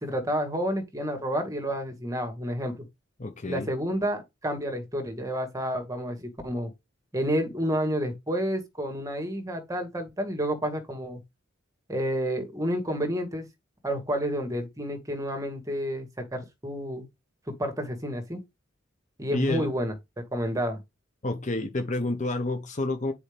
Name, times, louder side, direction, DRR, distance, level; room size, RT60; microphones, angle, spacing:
voice 1, 0.0-2.9 3.5-6.7 7.1-11.2 11.9-13.5 13.8-17.1 17.5-18.4 19.2-19.9 20.3-20.8, equal, 15° right, 1.9 m, -30 dB
voice 2, 3.2-3.7 19.3-19.7 21.2-23.1, left 2 dB, 40° left, 1.0 m, -29 dB
9.8 x 4.7 x 3.5 m
head